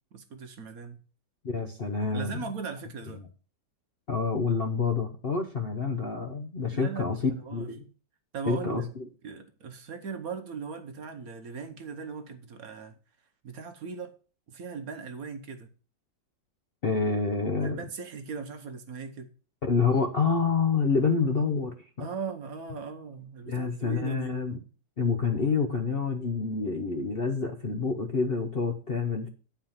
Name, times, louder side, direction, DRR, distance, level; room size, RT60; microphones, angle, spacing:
voice 1, 0.1-1.0 2.1-3.2 6.7-7.7 8.3-8.9 9.2-12.9 13.4-14.1 14.5-15.7 17.6-19.3 22.0-24.3, right 5 dB, 60° right, 1.2 m, -39 dB
voice 2, 1.4-2.4 4.1-7.8 8.5-8.8 16.8-17.8 19.6-22.1 23.5-24.6 25.0-29.3, left 4 dB, 45° left, 0.8 m, -27 dB
9.3 x 4.8 x 7.2 m
omnidirectional pair, 2.0 m